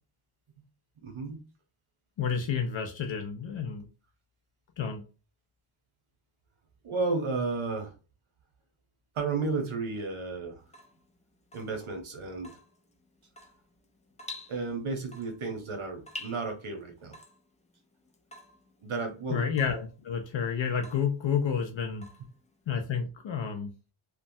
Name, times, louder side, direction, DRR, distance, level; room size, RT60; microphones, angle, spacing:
voice 1, 1.0-1.5 6.8-7.9 9.1-10.6 11.5-12.5 14.5-17.2 18.8-19.5, right 3 dB, 70° right, 1.0 m, -33 dB
voice 2, 2.2-3.9 4.8-5.0 19.3-22.1 22.7-23.7, left 7 dB, 65° left, 0.5 m, -30 dB
Water tap faucet / Drip, 10.6-22.8, left 2 dB, 15° left, 0.3 m, -50 dB
3.1 x 2.2 x 2.6 m
wide cardioid pair, 115°, 50 cm